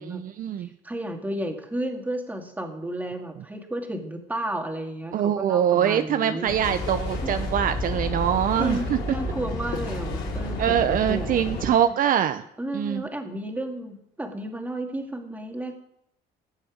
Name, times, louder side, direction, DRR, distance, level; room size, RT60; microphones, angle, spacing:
voice 1, 0.0-0.7 5.1-9.0 10.6-12.4 12.7-13.0, right 10 dB, 55° right, 9 dB, 0.6 m, -23 dB
voice 2, 0.6-6.5 7.2-7.3 8.6-11.5 12.6-15.8, right 1 dB, 10° right, 3 dB, 2.2 m, -32 dB
sound 1, 6.5-11.7, left 2 dB, 65° left, 5.9 m, -30 dB
17.5 x 7.5 x 5.1 m, 0.76 s
cardioid pair, 110°, 17 cm